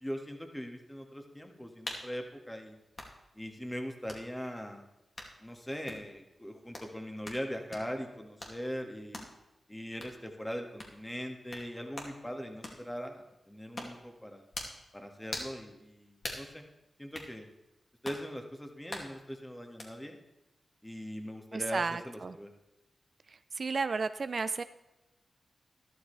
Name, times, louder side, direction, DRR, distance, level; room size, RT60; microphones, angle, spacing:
voice 1, 0.0-2.8 3.4-4.9 5.4-9.2 9.7-14.5 14.9-16.6 17.0-17.5 18.0-20.2 20.8-22.5, equal, 10° left, 4 dB, 1.9 m, -41 dB
sound 1, 1.9-2.1 2.9-3.1 4.1-4.2 5.2-5.3 5.9-6.1 6.7-6.9 7.2-7.4 7.7-7.9 8.4-8.6 9.1-9.3 10.0-10.2 10.8-11.0 11.5-11.7 11.9-12.1 12.6-12.8 13.8-14.0 14.5-14.8 15.3-15.6 16.2-16.5 17.1-17.3 18.0-18.2 18.9-19.1 19.8-19.9, left 1 dB, 50° left, 2.5 m, -41 dB
voice 2, 21.5-22.3 23.6-24.6, right 4 dB, 60° right, 12 dB, 0.4 m, -33 dB
13.0 x 12.5 x 3.4 m, 0.95 s
cardioid pair, 45°, 0 cm